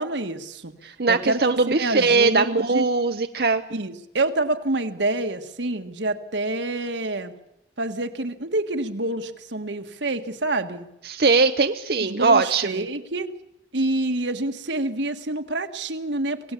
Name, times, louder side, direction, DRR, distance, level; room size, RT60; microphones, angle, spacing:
voice 1, 0.0-0.7 1.1-1.4 1.7-2.8 3.7-7.3 7.8-10.8 12.0-13.3 13.7-16.5, right 2 dB, 90° right, 7 dB, 1.7 m, -27 dB
voice 2, 0.8-3.6 11.0-12.9, right 4 dB, 60° right, 7 dB, 0.8 m, -20 dB
26.5 x 17.0 x 8.4 m, 0.85 s
head